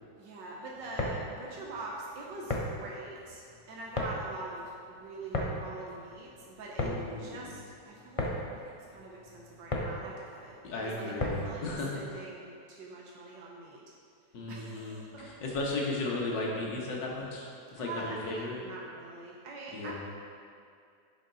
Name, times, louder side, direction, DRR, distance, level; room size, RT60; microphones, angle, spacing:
voice 1, 0.2-6.9 7.2-13.8 14.5-15.3 17.8-19.9, right 3 dB, 85° right, -3 dB, 1.6 m, -44 dB
sound 1, 0.8-11.6, left 1 dB, 55° left, 0.3 m, -37 dB
voice 2, 6.8-7.5 10.6-12.0 14.3-18.6 19.7-19.9, left 2 dB, 80° left, -2 dB, 1.9 m, -35 dB
10.5 x 5.2 x 4.0 m, 2.4 s
omnidirectional pair, 1.9 m